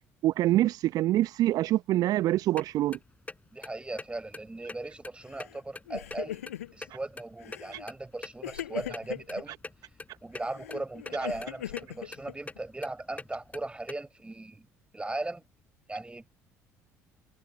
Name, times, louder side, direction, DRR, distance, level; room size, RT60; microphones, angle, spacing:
voice 1, 0.2-3.0 7.7-7.8, right 14 dB, 55° right, 1.0 m, -25 dB
sound 1, 2.6-2.7 2.9-3.3 3.6-3.7 4.0-4.1 4.3-5.1 5.3-6.5 6.8-8.3 8.6-8.7 8.9-9.0 9.3-9.4 9.6-9.7 10.0-10.4 10.7-11.1 11.4-11.9 12.1-13.9, left 3 dB, 20° left, 7.6 m, -41 dB
voice 2, 3.5-6.4 6.7-9.6 10.2-14.7 14.9-15.4 15.9-16.3, right 2 dB, 15° right, 4.7 m, -38 dB
Crying sobbing, 5.3-5.6 5.9-6.9 7.4-7.9 8.4-9.4 10.3-12.6, left 12 dB, 75° left, 7.9 m, -40 dB
figure-of-eight pair, 55°, 8 cm